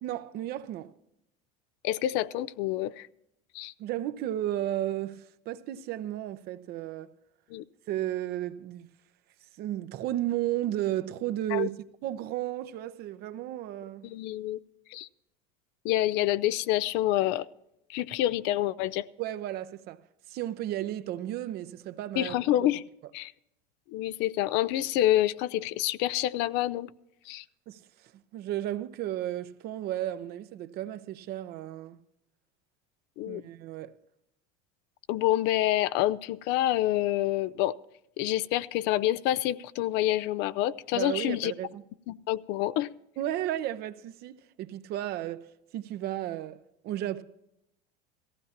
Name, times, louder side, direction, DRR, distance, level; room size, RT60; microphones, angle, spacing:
voice 1, 0.0-0.9 3.8-7.1 7.9-8.9 9.6-14.1 19.2-20.0 20.3-22.4 27.7-32.0 33.3-33.9 40.9-41.8 43.2-47.2, right 13 dB, 55° right, 0.8 m, -34 dB
voice 2, 1.8-3.1 3.5-3.7 7.5-7.6 11.5-11.7 14.0-14.6 14.9-15.1 15.8-17.5 17.9-19.1 22.2-22.8 23.1-23.3 23.9-26.9 27.3-27.4 33.2-33.4 35.1-37.8 38.2-41.5 42.1-42.9, left 14 dB, 60° left, 0.5 m, -27 dB
17.5 x 15.5 x 2.9 m
supercardioid pair, 110°, 20 cm